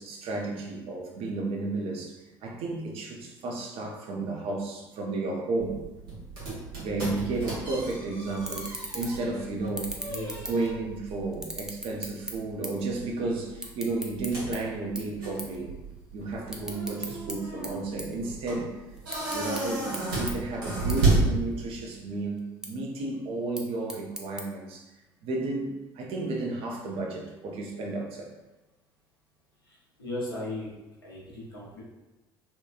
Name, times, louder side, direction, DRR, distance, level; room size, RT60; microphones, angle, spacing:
voice 1, 0.0-5.8 6.8-10.0 10.4-15.7 16.1-18.7 19.3-24.9 25.2-28.3, right 2 dB, 55° right, 1 dB, 0.5 m, -32 dB
sound 1, 5.6-22.0, right 2 dB, 75° right, 0.8 m, -33 dB
sound 2, 7.8-8.0 8.4-9.3 9.7-10.9 11.3-12.9 13.1-14.6 15.0-15.1 15.4-15.6 15.9-17.3 17.6-18.6 19.0-19.6 19.9-20.0 20.3-20.4 20.9-21.0 21.4-21.9 22.4-22.7 23.3-24.4, right 1 dB, 5° right, 0.5 m, -37 dB
voice 2, 10.0-10.5 29.7-30.7 31.0-31.8, left 1 dB, 90° left, -6 dB, 0.7 m, -37 dB
2.8 x 2.2 x 2.4 m, 1.1 s
figure-of-eight pair, 55°, 12 cm